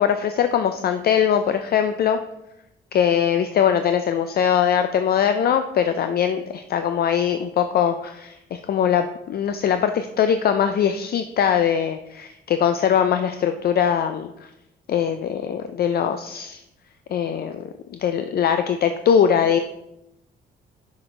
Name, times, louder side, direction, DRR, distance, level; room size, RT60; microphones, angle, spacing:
voice 1, 0.0-2.2 2.9-14.3 14.9-16.6 17.1-17.7 18.0-19.6, left 8 dB, 50° left, 8 dB, 0.4 m, -21 dB
6.2 x 6.0 x 3.3 m, 0.86 s
cardioid pair, 90°, 20 cm